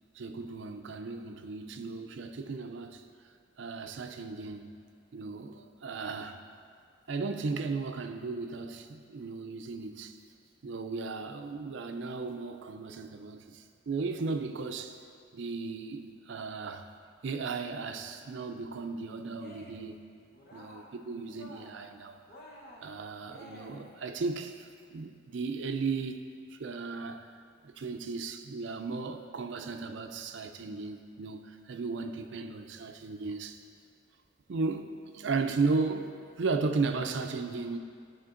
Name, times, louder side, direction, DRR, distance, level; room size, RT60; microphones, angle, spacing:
voice 1, 0.2-3.0 3.6-4.7 5.1-6.4 7.1-10.2 10.6-15.0 15.3-16.9 17.2-20.1 20.5-22.2 22.8-26.2 26.5-27.3 27.6-33.6 34.5-34.9 35.1-36.1 36.4-37.8, right 4 dB, 60° right, 7 dB, 0.4 m, -35 dB
Cheering, 19.3-20.0 20.3-21.0 21.3-21.9 22.3-24.1, equal, 50° left, 0.9 m, -51 dB
12.5 x 4.3 x 2.5 m, 2.2 s
head